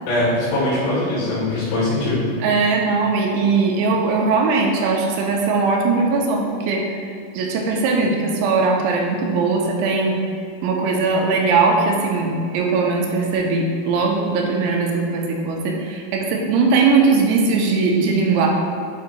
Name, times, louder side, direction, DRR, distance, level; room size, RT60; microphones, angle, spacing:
voice 1, 0.1-2.2, left 1 dB, 85° left, -11 dB, 4.0 m, -21 dB
voice 2, 2.4-7.0 7.3-10.2 10.6-18.5, right 4 dB, 90° right, 0 dB, 3.0 m, -19 dB
8.9 x 4.7 x 2.3 m, 2.4 s
omnidirectional pair, 5.2 m